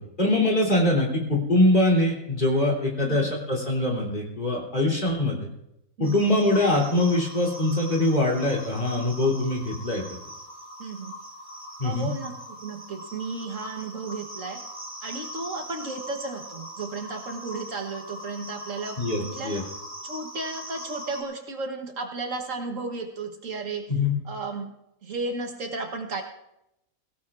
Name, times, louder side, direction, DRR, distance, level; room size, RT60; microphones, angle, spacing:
voice 1, 0.2-5.4 6.0-10.0 11.8-12.1 19.0-19.6 23.9-24.1, left 1 dB, 35° left, -1 dB, 3.3 m, -23 dB
voice 2, 3.0-3.3 6.0-6.3 10.8-11.2 11.8-14.6 15.0-19.7 20.0-23.9 24.2-24.7 25.0-26.2, right 3 dB, 65° right, 4 dB, 1.6 m, -34 dB
sound 1, 6.0-21.2, equal, 10° right, 2.9 m, -41 dB
21.5 x 16.5 x 2.5 m, 0.83 s
omnidirectional pair, 1.5 m